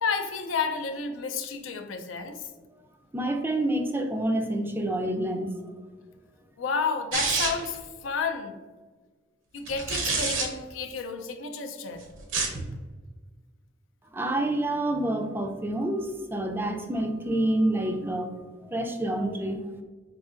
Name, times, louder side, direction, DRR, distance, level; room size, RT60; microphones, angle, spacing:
voice 1, 0.0-2.4 6.6-8.6 9.5-12.1, left 5 dB, 90° left, 6 dB, 0.5 m, -31 dB
voice 2, 3.1-5.7 14.1-18.3 18.6-19.8, right 1 dB, 10° right, 4 dB, 0.3 m, -28 dB
sound 1, 7.1-7.8 9.7-10.5 12.2-12.6, right 4 dB, 75° right, 0.7 m, -27 dB
5.2 x 2.7 x 2.4 m, 1.4 s
head